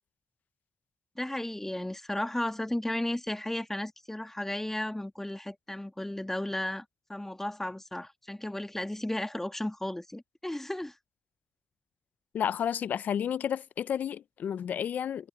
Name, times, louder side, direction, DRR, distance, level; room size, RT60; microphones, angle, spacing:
voice 1, 1.1-10.9, left 1 dB, 10° left, 1.5 m, -34 dB
voice 2, 12.3-15.3, left 9 dB, 75° left, 0.5 m, -31 dB
cardioid pair, 55°, 3 cm